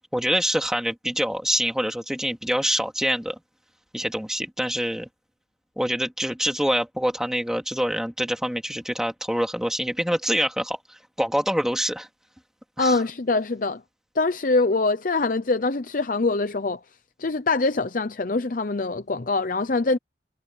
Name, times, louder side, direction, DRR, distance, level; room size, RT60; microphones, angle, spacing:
voice 1, 0.1-3.4 3.9-5.1 5.8-12.1 12.8-13.0, equal, 5° right, 2.6 m, -25 dB
voice 2, 12.8-13.8 14.2-16.8 17.2-20.0, left 3 dB, 45° left, 0.7 m, -24 dB
head